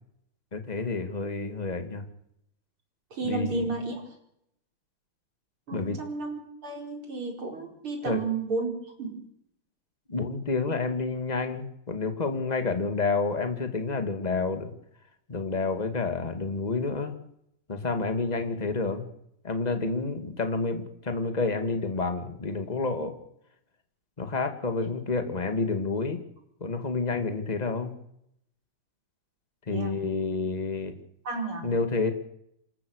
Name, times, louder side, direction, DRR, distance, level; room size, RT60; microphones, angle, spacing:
voice 1, 0.5-2.0 3.2-3.6 5.7-6.0 8.1-8.2 10.1-14.7 15.3-17.1 17.7-19.1 19.4-23.2 24.2-26.2 26.6-27.9 29.7-30.9 31.6-32.1, left 3 dB, 20° left, 7 dB, 2.2 m, -29 dB
voice 2, 3.1-4.0 5.7-8.7 9.0-9.2 29.7-30.0 31.3-31.7, right 3 dB, 85° right, 2 dB, 5.6 m, -32 dB
27.5 x 14.5 x 6.5 m, 0.74 s
omnidirectional pair, 2.3 m